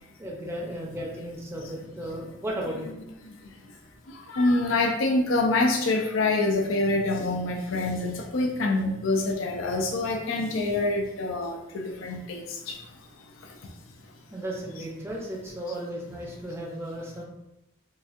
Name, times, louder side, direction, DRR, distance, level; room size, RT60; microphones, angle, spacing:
voice 1, 0.2-2.9 14.3-17.2, right 1 dB, 10° right, -2 dB, 0.5 m, -35 dB
voice 2, 4.3-12.8, left 2 dB, 80° left, 2 dB, 0.5 m, -26 dB
4.0 x 2.4 x 2.4 m, 0.92 s
head